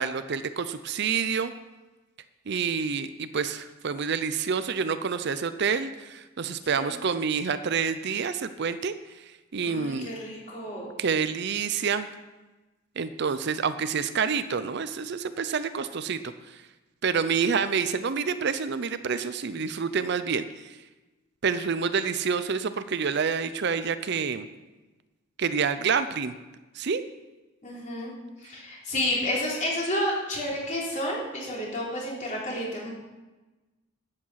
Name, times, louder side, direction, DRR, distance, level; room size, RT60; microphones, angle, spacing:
voice 1, 0.0-1.5 2.5-8.9 9.5-10.1 11.0-12.1 13.0-16.2 16.5-16.6 17.0-20.5 21.4-24.5 25.4-26.3 26.8-27.0, right 6 dB, 55° right, 12 dB, 0.5 m, -28 dB
voice 2, 9.6-10.9 27.6-28.1 28.4-32.9, left 1 dB, 35° left, -4 dB, 3.5 m, -30 dB
12.0 x 8.8 x 5.7 m, 1.1 s
head